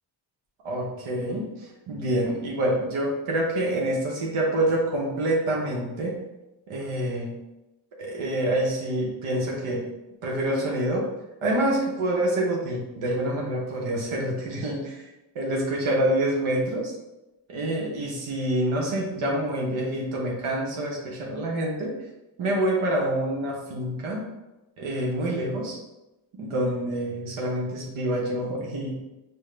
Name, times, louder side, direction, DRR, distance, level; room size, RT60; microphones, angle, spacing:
voice 1, 0.6-1.5 1.9-6.2 6.7-7.3 8.0-9.9 10.2-11.1 11.4-15.0 15.4-16.9 17.5-22.0 22.4-24.3 24.8-25.8 26.4-29.0, right 1 dB, 75° right, -2 dB, 0.8 m, -27 dB
4.6 x 2.1 x 3.1 m, 0.99 s
supercardioid pair, 50°, 49 cm